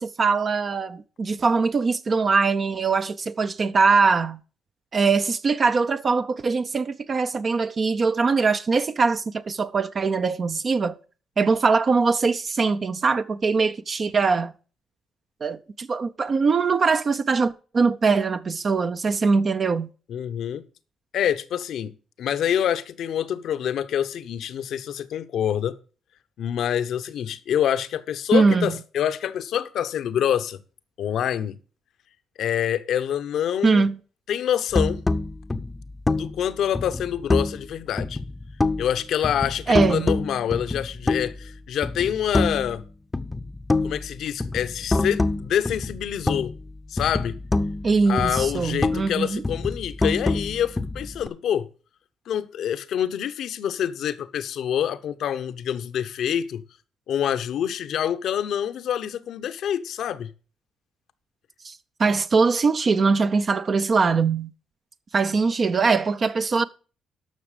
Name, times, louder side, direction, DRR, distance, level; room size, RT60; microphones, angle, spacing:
voice 1, 0.0-4.4 4.9-11.0 11.4-14.5 15.4-19.9 28.3-28.7 33.6-34.0 39.7-40.1 47.8-49.4 61.6-64.5 65.1-66.6, right 4 dB, 40° right, 0.6 m, -22 dB
voice 2, 20.1-20.6 21.1-25.8 26.4-30.6 31.0-31.5 32.4-33.9 34.3-35.0 36.1-38.2 38.8-42.8 43.8-46.5 46.9-47.4 48.1-51.7 52.3-56.6 57.1-60.3, left 9 dB, 75° left, 0.9 m, -26 dB
sound 1, 34.7-37.7 38.0-39.0 39.2-41.5 41.8-42.8 43.1-46.7 47.0-49.1 49.4-51.3, left 2 dB, 20° left, 0.7 m, -26 dB
13.0 x 5.9 x 5.0 m
cardioid pair, 90°, 0 cm